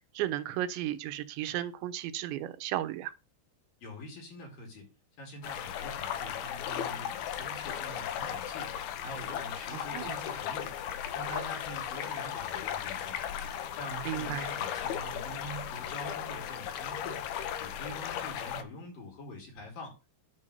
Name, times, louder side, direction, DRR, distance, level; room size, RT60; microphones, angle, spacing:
voice 1, 0.1-3.1 9.7-10.2 14.1-14.5, right 13 dB, 90° right, 3.3 m, -34 dB
voice 2, 3.8-4.9 5.2-10.8 11.1-13.2 13.8-17.2 17.6-20.0, equal, 50° left, 6.4 m, -45 dB
sound 1, 5.4-18.6, left 9 dB, 70° left, 2.6 m, -36 dB
10.5 x 5.5 x 6.8 m
omnidirectional pair, 5.0 m